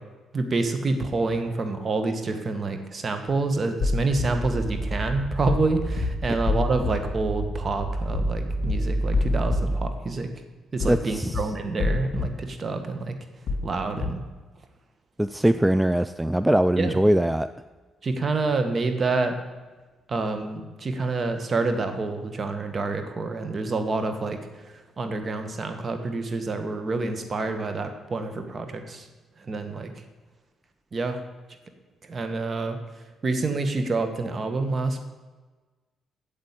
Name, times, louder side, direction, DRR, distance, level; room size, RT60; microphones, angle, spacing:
voice 1, 0.3-10.3 10.7-13.1 13.6-14.2 16.8-17.0 18.0-19.3 20.1-24.4 24.7-29.1 29.5-29.9 30.9-31.2 32.1-32.8 33.2-35.0, right 3 dB, 40° right, 7 dB, 1.7 m, -27 dB
sound 1, 3.8-4.2 5.5-5.7 6.0-6.1 6.5-6.9 8.1-8.3 8.6-8.7 9.1-9.6 10.8-11.0 11.3-11.4 11.8-12.2 13.5-13.7 14.0-14.1, left 3 dB, 60° left, 3.5 m, -26 dB
sound 2, 4.2-10.0, right 1 dB, 25° right, 3.4 m, -29 dB
voice 2, 10.9-11.4 15.2-17.5, right 1 dB, 10° right, 13 dB, 0.4 m, -21 dB
8.8 x 7.6 x 8.6 m, 1.3 s
cardioid pair, 90°, 0 cm